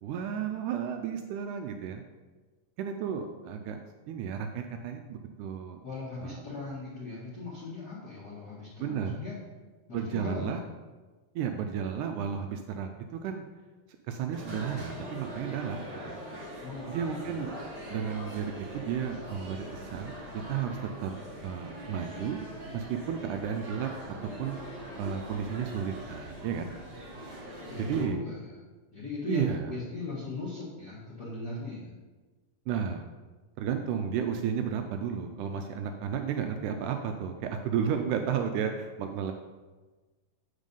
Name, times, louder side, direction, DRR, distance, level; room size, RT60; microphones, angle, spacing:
voice 1, 0.0-2.0 2.8-3.8 4.1-5.8 6.2-6.4 8.8-9.2 9.9-10.6 11.4-13.5 14.1-16.3 16.9-17.5 17.9-20.2 20.5-21.1 21.4-22.4 22.7-23.9 24.2-24.6 25.0-26.7 27.5-28.2 29.3-29.7 32.7-33.1 33.6-39.3, right 8 dB, 90° right, 5 dB, 1.7 m, -33 dB
voice 2, 5.8-9.4 9.9-10.6 16.6-17.4 27.7-28.6 28.9-31.9, left 3 dB, 80° left, -7 dB, 0.8 m, -38 dB
sound 1, 14.3-28.1, equal, 45° right, 1.5 m, -42 dB
9.1 x 4.1 x 5.3 m, 1.3 s
omnidirectional pair, 4.1 m